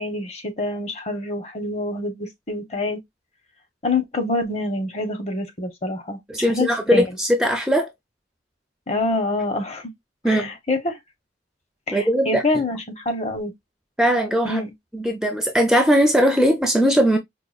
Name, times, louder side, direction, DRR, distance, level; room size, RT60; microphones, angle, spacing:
voice 1, 0.0-3.0 3.8-7.1 8.9-9.9 10.2-11.0 11.9-13.5 14.4-14.7, left 2 dB, 35° left, 0.8 m, -26 dB
voice 2, 6.3-7.9 10.2-10.5 11.9-12.4 14.0-14.6 14.9-17.2, equal, 5° right, 0.4 m, -19 dB
4.7 x 2.3 x 2.3 m
head